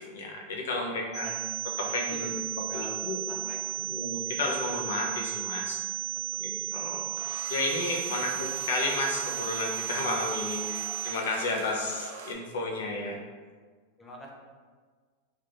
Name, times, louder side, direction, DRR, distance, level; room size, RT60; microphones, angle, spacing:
voice 1, 0.0-1.3 1.8-2.4 2.7-3.2 3.9-5.8 6.4-7.1 7.5-13.2, left 2 dB, 85° left, -1 dB, 0.7 m, -32 dB
voice 2, 0.9-1.5 1.8-2.3 2.7-2.9 3.3-3.9 6.3-6.4 8.1-8.3 14.0-14.3, left 1 dB, 15° left, -2 dB, 0.6 m, -46 dB
sound 1, 1.1-11.1, right 15 dB, 30° right, 0.9 m, -34 dB
sound 2, 7.1-12.3, right 4 dB, 70° right, 0.5 m, -43 dB
3.3 x 3.1 x 2.5 m, 1.5 s
supercardioid pair, 135°, 0 cm